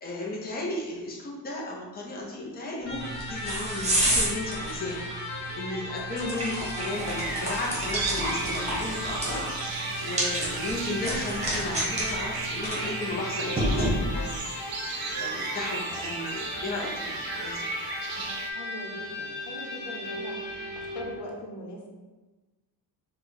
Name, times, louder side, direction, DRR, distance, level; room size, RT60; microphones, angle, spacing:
voice 1, 0.0-5.1 5.3-14.4 15.2-17.7, left 2 dB, 25° left, -3 dB, 0.6 m, -35 dB
Electric guitar, 2.8-21.2, left 1 dB, 45° left, 0.9 m, -37 dB
sound 1, 2.9-14.4, right 1 dB, 15° right, 1.0 m, -31 dB
sound 2, 6.9-18.5, right 4 dB, 65° right, 0.6 m, -35 dB
voice 2, 18.5-20.4 20.7-21.9, left 1 dB, 85° left, 0 dB, 0.9 m, -40 dB
4.4 x 2.2 x 3.9 m, 1.2 s
wide cardioid pair, 175°, 40 cm